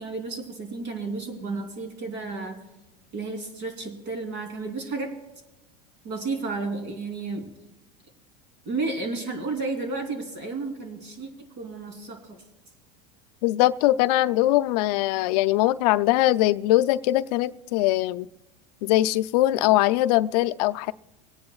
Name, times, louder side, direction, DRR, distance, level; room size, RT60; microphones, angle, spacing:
voice 1, 0.0-2.6 3.1-5.1 6.0-7.5 8.6-11.3 11.6-12.4, right 3 dB, 60° right, 4 dB, 3.3 m, -32 dB
voice 2, 13.4-18.3 18.8-20.9, left 15 dB, 70° left, 13 dB, 0.5 m, -21 dB
23.5 x 9.5 x 2.4 m, 0.96 s
supercardioid pair, 115°, 21 cm